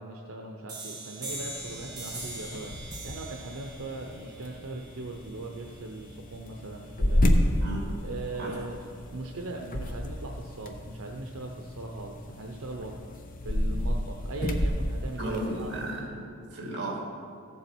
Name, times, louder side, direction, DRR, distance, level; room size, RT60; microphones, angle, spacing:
voice 1, 0.0-7.4 8.0-8.8 9.1-13.0 13.4-15.7, right 2 dB, 85° right, 2 dB, 0.8 m, -39 dB
sound 1, 0.7-6.1, right 2 dB, 20° right, 2.1 m, -42 dB
sound 2, 1.2-16.0, left 1 dB, 40° left, 0.8 m, -32 dB
voice 2, 7.6-8.0 8.4-8.6 15.2-17.1, right 1 dB, 55° right, -2 dB, 2.7 m, -34 dB
15.0 x 7.4 x 4.4 m, 2.3 s
head